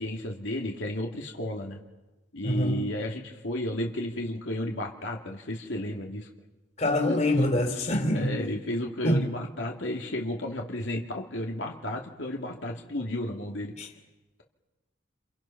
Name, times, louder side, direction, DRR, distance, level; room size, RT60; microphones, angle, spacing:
voice 1, 0.0-1.8 2.3-6.3 7.1-7.2 7.8-13.7, left 1 dB, 80° left, 2.6 m, -33 dB
voice 2, 2.4-2.9 6.8-8.4 9.0-9.2 13.8-13.9, left 1 dB, 35° left, 3.5 m, -25 dB
29.0 x 28.5 x 5.9 m
head